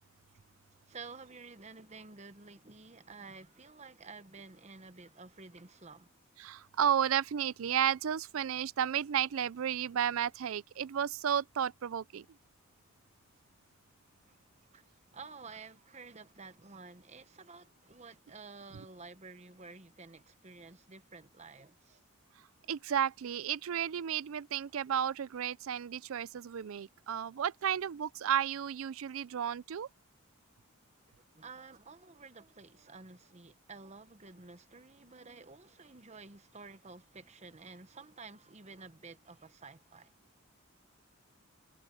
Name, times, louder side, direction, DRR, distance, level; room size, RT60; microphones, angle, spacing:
voice 1, 0.9-6.1 14.3-22.0 31.3-40.1, right 4 dB, 30° right, 1.0 m, -51 dB
voice 2, 6.4-12.3 22.7-29.9, right 9 dB, 70° right, 0.4 m, -33 dB
head